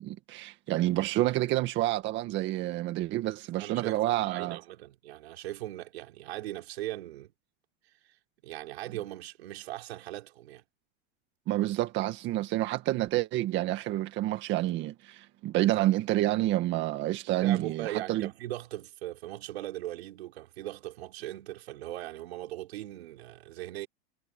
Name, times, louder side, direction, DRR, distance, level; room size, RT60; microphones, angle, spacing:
voice 1, 0.0-4.6 11.5-18.3, right 15 dB, 40° right, 1.9 m, -28 dB
voice 2, 3.6-7.3 8.0-8.1 8.4-10.6 17.4-23.9, right 14 dB, 85° right, 4.3 m, -39 dB
supercardioid pair, 145°, 31 cm